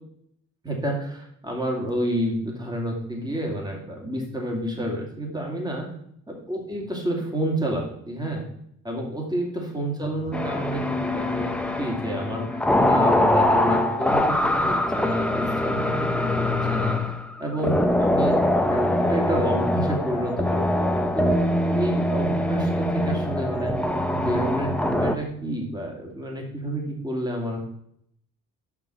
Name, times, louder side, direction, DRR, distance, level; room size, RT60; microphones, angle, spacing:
voice 1, 0.6-5.9 6.3-8.4 8.8-11.5 11.8-17.1 17.4-21.4 21.7-23.7 24.1-27.6, right 1 dB, 15° right, 0 dB, 2.7 m, -29 dB
sound 1, 10.3-25.1, left 1 dB, 5° left, 0.8 m, -23 dB
6.0 x 5.8 x 5.6 m, 0.71 s
cardioid pair, 90°, 30 cm